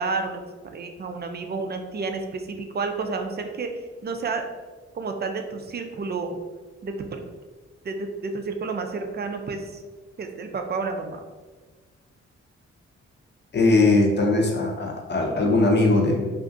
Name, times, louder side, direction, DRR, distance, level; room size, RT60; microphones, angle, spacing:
voice 1, 0.0-3.7 4.0-4.5 4.9-6.4 6.8-7.2 7.8-9.8 10.2-11.2, right 4 dB, 35° right, 5 dB, 0.5 m, -30 dB
voice 2, 13.5-16.3, left 2 dB, 35° left, 0 dB, 0.8 m, -20 dB
2.5 x 2.4 x 3.8 m, 1.3 s
supercardioid pair, 45°, 30 cm